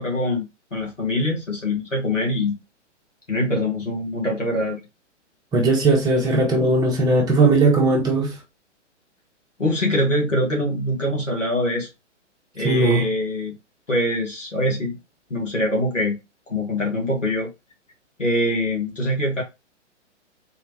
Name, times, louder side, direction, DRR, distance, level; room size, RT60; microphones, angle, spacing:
voice 1, 0.0-2.6 3.3-4.8 9.6-11.9 12.6-13.6 13.9-15.0 15.3-16.2 16.5-17.5 18.2-19.4, left 1 dB, 90° left, 2.0 m, -24 dB
voice 2, 5.5-8.3 12.6-13.1, right 2 dB, 10° right, 0.9 m, -18 dB
3.8 x 3.1 x 3.1 m
figure-of-eight pair, 120°, 36 cm